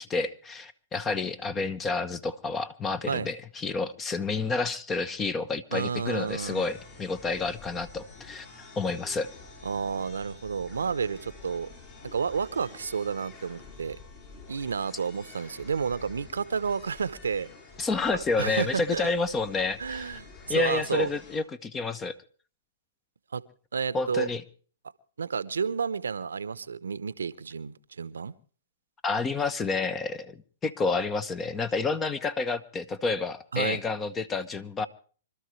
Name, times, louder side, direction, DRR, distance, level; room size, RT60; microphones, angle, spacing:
voice 1, 0.0-8.5 8.8-9.3 17.8-20.2 20.5-22.1 23.9-24.4 29.0-34.9, left 3 dB, 20° left, 1.0 m, -29 dB
voice 2, 5.7-6.6 9.6-11.7 12.0-14.0 14.5-17.5 18.1-19.1 19.8-21.1 23.3-23.4 23.7-24.3 25.2-28.3 33.5-33.8, right 6 dB, 85° right, 0.8 m, -31 dB
sound 1, 6.3-21.4, left 4 dB, 40° left, 7.5 m, -49 dB
25.5 x 13.0 x 3.2 m
hypercardioid pair, 130°, 0 cm